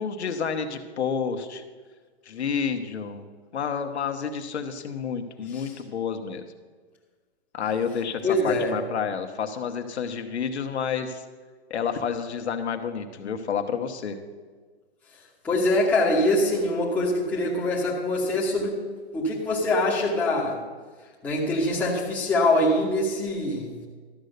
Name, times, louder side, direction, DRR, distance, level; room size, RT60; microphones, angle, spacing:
voice 1, 0.0-1.6 2.3-3.2 3.5-6.4 7.5-11.2 11.7-14.2, left 6 dB, 75° left, 6 dB, 1.2 m, -29 dB
voice 2, 8.2-8.7 15.4-18.8 19.1-20.6 21.2-23.7, left 1 dB, 5° left, -5 dB, 1.1 m, -24 dB
12.5 x 6.6 x 6.6 m, 1.5 s
hypercardioid pair, 165°, 33 cm